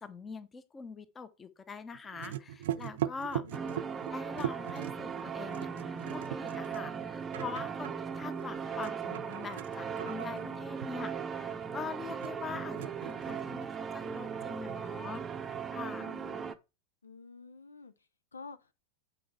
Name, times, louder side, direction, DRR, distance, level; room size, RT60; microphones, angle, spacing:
voice 1, 0.0-3.4 4.1-15.2 15.7-16.1, left 5 dB, 20° left, 0.9 m, -43 dB
sound 1, 1.9-13.9 14.2-15.6, right 12 dB, 55° right, 0.6 m, -41 dB
voice 2, 3.4-4.0 10.3-10.7 16.0-16.5 17.0-18.7, left 4 dB, 75° left, 0.6 m, -51 dB
sound 2, 3.5-16.5, right 6 dB, 20° right, 0.7 m, -38 dB
8.5 x 5.6 x 4.2 m
figure-of-eight pair, 90°, 0 cm